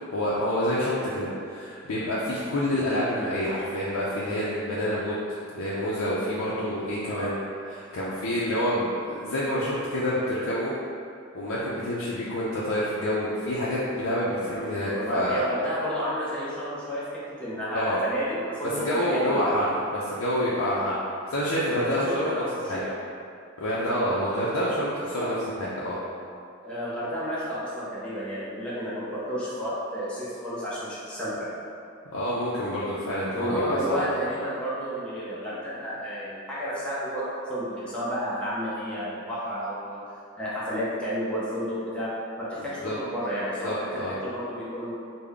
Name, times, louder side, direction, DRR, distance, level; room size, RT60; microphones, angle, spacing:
voice 1, 0.1-5.2 5.5-7.3 7.7-10.7 11.3-15.4 17.7-18.0 18.7-19.7 19.9-21.0 21.3-22.4 22.7-22.8 23.6-26.0 32.1-34.0 42.8-43.0 43.6-44.1, equal, 90° left, -8 dB, 0.5 m, -27 dB
voice 2, 14.8-19.5 21.7-23.0 25.1-25.3 26.6-31.5 33.4-40.0 40.4-44.9, equal, 5° left, -10 dB, 0.6 m, -31 dB
3.6 x 2.1 x 3.4 m, 2.4 s
head